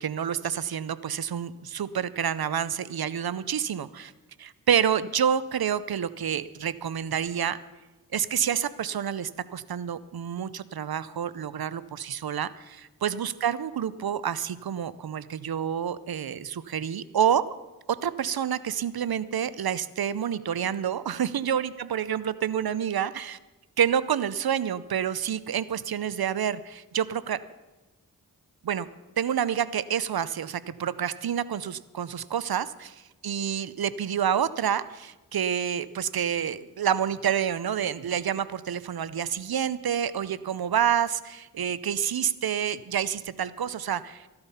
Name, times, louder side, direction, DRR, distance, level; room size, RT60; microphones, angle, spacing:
voice 1, 0.0-4.1 4.4-7.6 8.1-17.5 17.9-23.4 23.8-27.4 28.6-28.9 29.2-32.9 33.2-44.3, right 8 dB, 80° right, 17 dB, 0.6 m, -28 dB
15.0 x 11.5 x 5.6 m, 1.1 s
cardioid pair, 45°, 36 cm